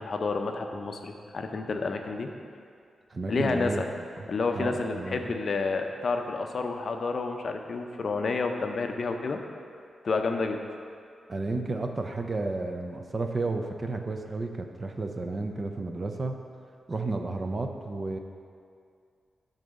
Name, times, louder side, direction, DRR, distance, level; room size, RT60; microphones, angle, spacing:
voice 1, 0.0-2.3 3.3-3.9 4.3-9.4 10.0-10.6, left 4 dB, 45° left, 5 dB, 0.6 m, -29 dB
voice 2, 3.1-3.8 4.2-5.2 11.3-16.4 16.9-18.2, right 3 dB, 30° right, 5 dB, 0.5 m, -32 dB
10.5 x 4.0 x 6.3 m, 2.3 s
wide cardioid pair, 170°, 0 cm